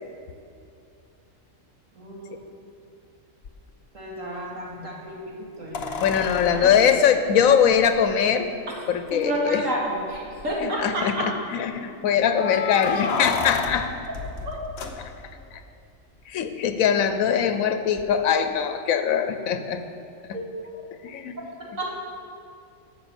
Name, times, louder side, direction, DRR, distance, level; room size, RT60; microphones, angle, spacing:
voice 1, 1.9-2.5 3.9-6.2 6.6-6.7 7.3-7.4 9.1-11.3 14.5-14.6 20.3-20.5 21.8-22.0, equal, 75° right, -4 dB, 2.6 m, -30 dB
sound 1, 3.4-3.5 5.7-8.1 9.1-9.2 9.5-9.6 10.1-10.6 12.3-15.5 18.0-18.1, left 5 dB, 55° left, 1.0 m, -32 dB
voice 2, 6.0-8.5 8.9-9.6 10.6-14.0 15.0-15.1 15.5-15.6 16.3-19.8 21.0-21.4, left 8 dB, 85° left, 9 dB, 1.1 m, -22 dB
11.5 x 7.2 x 7.0 m, 2.5 s
omnidirectional pair, 1.4 m